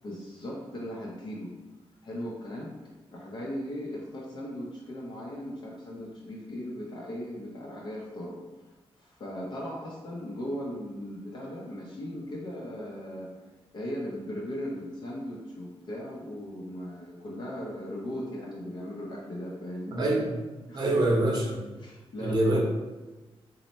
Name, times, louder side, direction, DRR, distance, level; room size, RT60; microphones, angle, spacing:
voice 1, 0.0-1.5 2.0-2.7 3.1-8.4 9.0-13.3 13.7-20.0 20.7-21.2 21.8-22.6, equal, 50° left, -4 dB, 0.5 m, -38 dB
voice 2, 19.9-20.3 20.7-21.6 22.2-22.6, right 1 dB, 45° right, -1 dB, 0.7 m, -25 dB
3.2 x 2.0 x 4.1 m, 1.2 s
wide cardioid pair, 165°, 10 cm